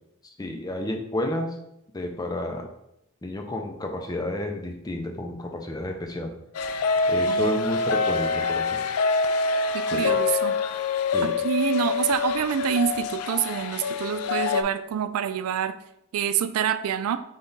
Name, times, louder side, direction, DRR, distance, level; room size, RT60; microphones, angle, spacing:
voice 1, 0.4-1.5 1.9-2.7 3.2-6.3 7.1-8.8 9.9-10.2 11.1-11.3, left 1 dB, 15° left, 3 dB, 0.4 m, -31 dB
sound 1, 6.5-14.6, left 4 dB, 90° left, 0.3 m, -25 dB
voice 2, 7.3-7.8 9.7-10.6 11.2-15.8 16.1-17.2, right 9 dB, 85° right, 12 dB, 0.3 m, -27 dB
3.7 x 3.4 x 4.0 m, 0.81 s
head